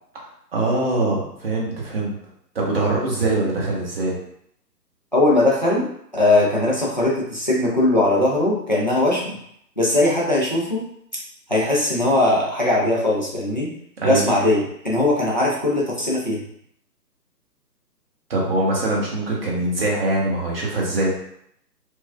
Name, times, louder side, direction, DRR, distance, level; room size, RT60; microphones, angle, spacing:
voice 1, 0.5-2.2 2.5-4.1 14.0-14.3 18.3-21.1, right 2 dB, 35° right, -4 dB, 0.9 m, -22 dB
voice 2, 5.1-5.9 6.1-9.4 9.8-10.8 11.5-13.7 14.0-16.4, left 2 dB, 30° left, -4 dB, 0.4 m, -20 dB
4.5 x 2.3 x 2.3 m, 0.72 s
figure-of-eight pair, 140°, 50 cm